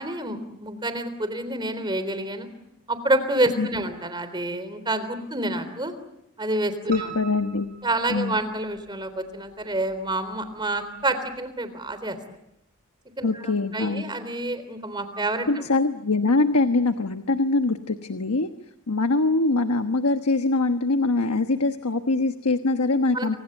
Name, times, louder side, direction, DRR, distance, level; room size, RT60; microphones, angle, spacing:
voice 1, 0.0-2.5 2.9-5.9 6.4-7.1 7.8-12.2 13.2-15.6 23.1-23.4, right 1 dB, 20° right, 11 dB, 3.6 m, -28 dB
voice 2, 6.9-7.7 8.1-8.3 13.2-14.1 15.5-18.5 18.9-23.4, left 3 dB, 90° left, 8 dB, 1.2 m, -23 dB
Piano, 6.9-8.8 9.3-10.1 10.4-10.5 11.0-11.1 11.3-11.4, right 7 dB, 40° right, 6.0 m, -41 dB
29.0 x 25.5 x 8.0 m, 0.81 s
head